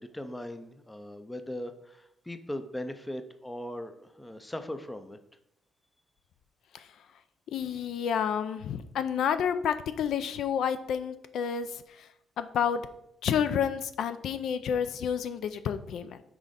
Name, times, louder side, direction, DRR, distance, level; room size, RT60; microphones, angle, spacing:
voice 1, 0.0-5.2, left 1 dB, 10° left, 9 dB, 0.4 m, -39 dB
voice 2, 7.5-12.1 12.4-12.8 13.2-16.2, left 8 dB, 65° left, 11 dB, 0.4 m, -30 dB
6.1 x 4.1 x 5.0 m, 0.79 s
cardioid pair, 170°, 0 cm